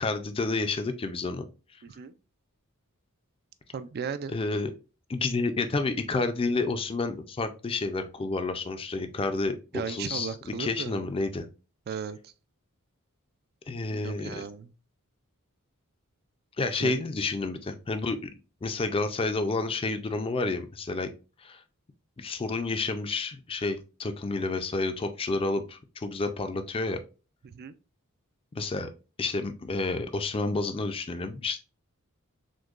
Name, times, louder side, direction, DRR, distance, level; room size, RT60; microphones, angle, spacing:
voice 1, 0.0-1.4 4.3-4.7 5.1-10.3 10.6-11.5 13.7-14.4 16.6-18.3 18.6-21.1 21.4-21.6 22.2-27.0 28.6-28.9 29.2-31.6, left 3 dB, 25° left, 0.4 m, -30 dB
voice 2, 1.8-2.1 3.7-4.3 9.7-11.1 11.9-12.3 13.9-14.7 16.8-17.0 27.4-27.7, right 6 dB, 45° right, 0.4 m, -36 dB
6.2 x 2.2 x 2.4 m
head